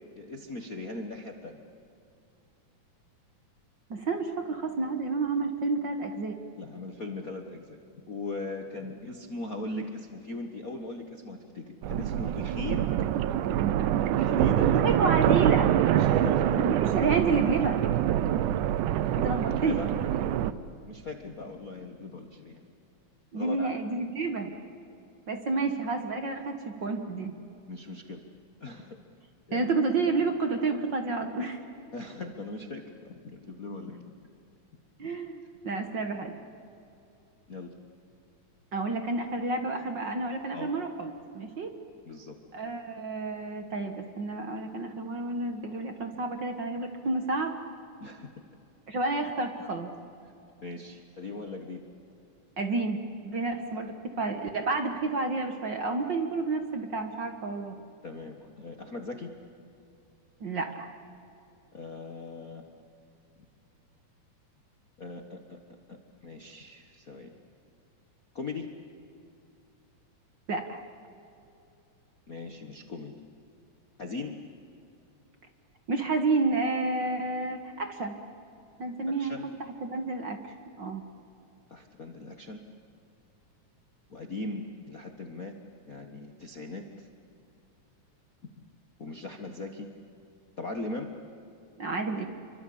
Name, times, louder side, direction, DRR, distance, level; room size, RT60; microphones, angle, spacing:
voice 1, 0.1-1.6 6.6-13.1 14.2-14.9 16.0-16.5 19.6-19.9 20.9-22.6 23.3-23.7 25.6-25.7 27.7-28.2 28.6-29.0 29.5-29.7 31.9-34.0 35.0-35.2 37.5-37.7 40.5-40.7 42.0-42.4 48.0-48.3 50.6-51.8 58.0-59.3 61.7-62.6 65.0-65.6 65.9-66.0 66.2-67.3 68.3-68.7 72.3-73.2 74.0-74.3 79.1-79.5 81.7-82.6 84.1-85.5 85.9-87.1 89.0-89.9 90.6-91.1, left 2 dB, 45° left, 4 dB, 1.1 m, -39 dB
voice 2, 3.9-6.3 14.7-15.7 16.6-17.8 19.2-19.8 23.3-24.5 25.3-27.3 29.5-31.6 35.0-36.4 38.7-41.7 42.5-47.5 48.9-49.9 52.6-57.8 60.4-60.9 70.5-70.8 75.9-78.1 78.8-79.4 79.8-81.0 91.8-92.3, right 3 dB, 45° right, 6 dB, 1.7 m, -30 dB
sound 1, 11.8-20.5, right 11 dB, 90° right, 2.3 m, -25 dB
28.0 x 24.0 x 8.6 m, 2.7 s
omnidirectional pair, 3.5 m